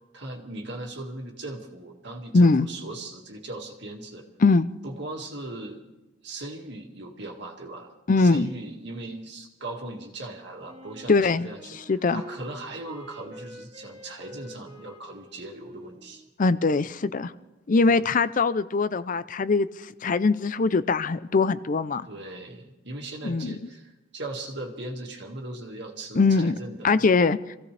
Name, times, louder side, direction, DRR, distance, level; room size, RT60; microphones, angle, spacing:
voice 1, 0.1-4.3 4.8-5.8 6.2-7.9 8.2-11.6 12.1-16.2 17.8-18.0 22.1-26.9, right 2 dB, 65° right, 2 dB, 2.1 m, -38 dB
voice 2, 2.3-2.7 4.4-4.7 8.1-8.5 11.1-11.5 11.9-12.2 16.4-17.3 17.7-19.7 20.0-22.1 23.2-23.6 26.1-26.6 26.8-27.6, left 3 dB, 45° left, 14 dB, 0.5 m, -21 dB
Wind instrument woodwind instrument, 10.6-17.4, equal, 25° right, 2.3 m, -47 dB
26.0 x 15.5 x 3.4 m, 1.0 s
head